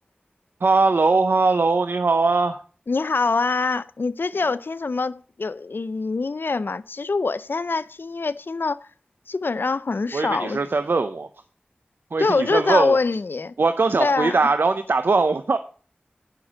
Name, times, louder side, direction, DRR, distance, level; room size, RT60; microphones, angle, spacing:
voice 1, 0.6-2.6 4.3-4.5 10.1-11.3 12.1-13.0 13.6-15.6, right 3 dB, 85° right, 0.7 m, -21 dB
voice 2, 2.9-8.9 9.3-10.6 12.2-13.5 14.0-14.4, left 3 dB, 80° left, 0.6 m, -24 dB
9.1 x 6.0 x 6.3 m
wide cardioid pair, 45°, 4 cm